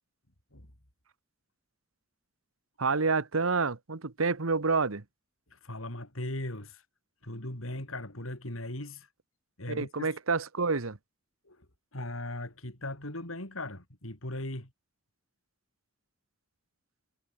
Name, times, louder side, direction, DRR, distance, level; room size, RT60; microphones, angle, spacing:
voice 1, 2.8-5.0 9.7-11.0, right 4 dB, 90° right, 1.3 m, -28 dB
voice 2, 5.5-6.8 7.2-9.1 9.6-10.1 11.5-11.6 11.9-14.7, left 1 dB, 85° left, 5.9 m, -38 dB
head